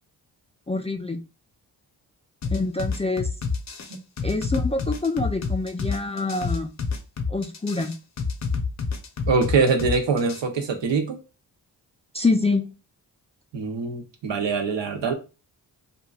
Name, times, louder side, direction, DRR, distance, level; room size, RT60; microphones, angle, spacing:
voice 1, 0.7-1.2 2.5-3.3 4.2-6.7 7.3-7.9 12.1-12.6, left 3 dB, 15° left, 0.3 m, -25 dB
sound 1, 2.4-10.4, left 4 dB, 40° left, 0.7 m, -28 dB
voice 2, 9.3-11.2 13.5-15.1, right 4 dB, 75° right, 0.8 m, -23 dB
3.0 x 2.4 x 2.3 m
cardioid pair, 55°, 44 cm